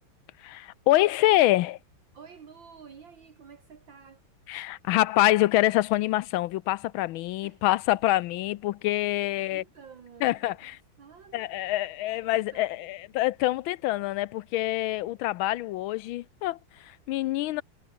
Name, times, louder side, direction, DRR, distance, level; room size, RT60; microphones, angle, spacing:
voice 1, 0.4-1.8 4.5-9.6 10.2-10.7 11.3-17.6, left 16 dB, 75° left, 1.3 m, -26 dB
voice 2, 2.1-4.2 7.4-7.6 7.9-8.0 9.2-10.7 11.0-11.9 12.2-13.0, right 6 dB, 60° right, 2.7 m, -51 dB
omnidirectional pair, 2.4 m